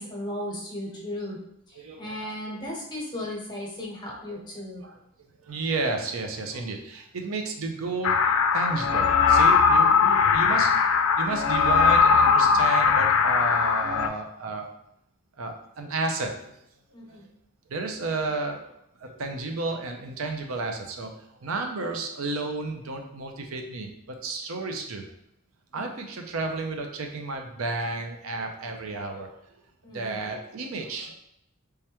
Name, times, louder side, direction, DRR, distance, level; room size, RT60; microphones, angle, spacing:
voice 1, 0.0-1.4 1.7-4.8 16.9-17.3 25.7-26.1 29.8-30.2, left 1 dB, 20° left, -2 dB, 0.9 m, -36 dB
voice 2, 1.8-2.3 4.3-4.4 4.8-5.0 5.4-14.7 15.4-16.5 17.1-17.3 17.7-18.6 19.0-21.1 21.4-25.0 25.7-29.3 29.9-31.1, right 3 dB, 85° right, 3 dB, 0.6 m, -32 dB
sound 1, 8.0-14.1, left 5 dB, 75° left, 0.4 m, -20 dB
3.4 x 3.4 x 2.9 m, 0.78 s
head